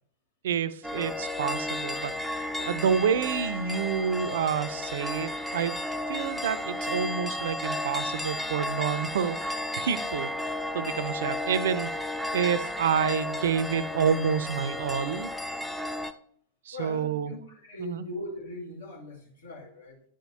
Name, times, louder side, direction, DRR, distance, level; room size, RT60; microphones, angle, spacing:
voice 1, 0.4-5.7 6.1-15.3 16.7-17.3 17.8-18.0, right 7 dB, 60° right, 14 dB, 0.4 m, -29 dB
sound 1, 0.8-16.1, left 1 dB, ahead, 0.5 m, -33 dB
voice 2, 16.7-20.0, left 1 dB, 75° left, -2 dB, 2.0 m, -40 dB
10.0 x 4.9 x 2.7 m, 0.63 s
figure-of-eight pair, 90°, 0 cm